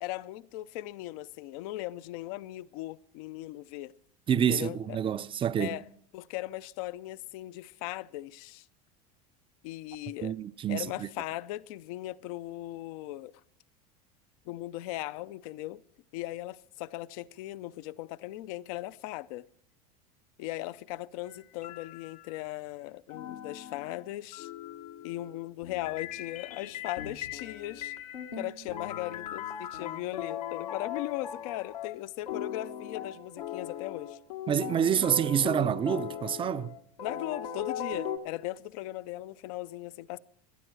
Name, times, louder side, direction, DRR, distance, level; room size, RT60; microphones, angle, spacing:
voice 1, 0.0-3.9 4.5-5.0 5.6-5.8 6.1-8.7 9.6-10.3 10.7-13.3 14.5-15.8 16.1-19.5 20.4-24.5 25.0-27.9 28.4-34.2 35.4-35.5 37.0-40.2, left 16 dB, 65° left, 0.5 m, -38 dB
voice 2, 4.3-5.8 10.2-11.1 34.5-36.8, right 9 dB, 25° right, 0.5 m, -27 dB
sound 1, 21.2-22.5 23.1-38.2, left 8 dB, 85° left, 1.4 m, -39 dB
18.0 x 12.0 x 4.6 m
hypercardioid pair, 90°, 20 cm